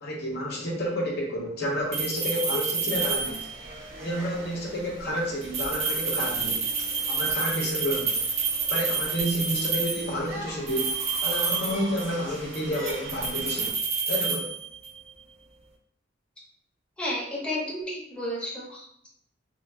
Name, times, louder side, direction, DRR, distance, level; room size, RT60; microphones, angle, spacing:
voice 1, 0.0-3.5 4.0-6.6 7.1-8.2 8.7-10.9 11.2-13.7 14.1-14.5, equal, 60° left, -2 dB, 0.7 m, -30 dB
sound 1, 1.9-3.7 5.4-10.1 10.7-12.2 12.5-15.0, right 5 dB, 35° right, 0.4 m, -29 dB
sound 2, 2.9-13.7, right 1 dB, 85° right, 0.8 m, -42 dB
voice 2, 17.0-19.1, left 1 dB, 5° left, -6 dB, 0.7 m, -32 dB
3.0 x 2.3 x 2.6 m, 0.68 s
head